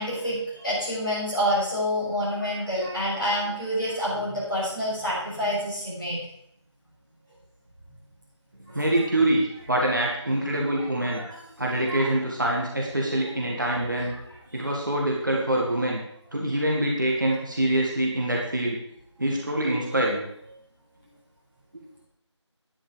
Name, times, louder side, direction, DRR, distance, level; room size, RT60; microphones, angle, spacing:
voice 1, 0.0-6.2 8.7-8.8 10.4-10.6 11.1-11.4 11.9-12.1 13.6-13.7 14.5-14.7, equal, ahead, -21 dB, 3.6 m, -28 dB
voice 2, 8.7-11.2 11.6-14.1 14.5-16.0 16.3-18.8 19.2-20.2, right 1 dB, 40° right, -2 dB, 2.0 m, -25 dB
11.0 x 10.0 x 5.1 m, 0.73 s
figure-of-eight pair, 170°, 15 cm